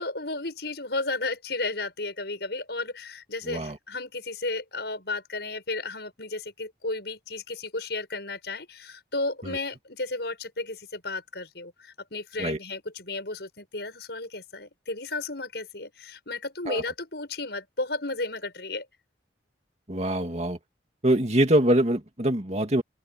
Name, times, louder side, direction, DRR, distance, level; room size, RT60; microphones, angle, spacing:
voice 1, 0.0-18.9, left 2 dB, 65° left, 7.5 m, -33 dB
voice 2, 3.4-3.8 9.5-9.6 12.4-12.6 16.7-16.8 19.9-20.6 21.0-22.8, right 1 dB, 35° right, 2.4 m, -24 dB
open air
head